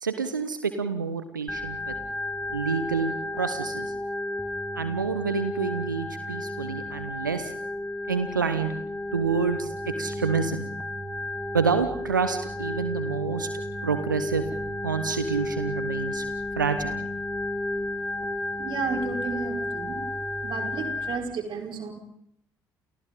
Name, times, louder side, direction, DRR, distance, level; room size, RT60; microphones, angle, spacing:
voice 1, 0.0-2.0 2.5-3.9 4.7-7.5 8.1-8.7 9.1-10.6 11.5-13.5 13.8-14.4 14.8-16.3 16.6-17.1, right 5 dB, 85° right, 10 dB, 1.1 m, -28 dB
Organ, 1.5-21.2, left 1 dB, 10° left, 3.2 m, -32 dB
voice 2, 18.6-20.0 20.4-21.9, right 5 dB, 55° right, 3 dB, 5.2 m, -32 dB
29.5 x 29.5 x 3.8 m, 0.71 s
figure-of-eight pair, 45°, 10 cm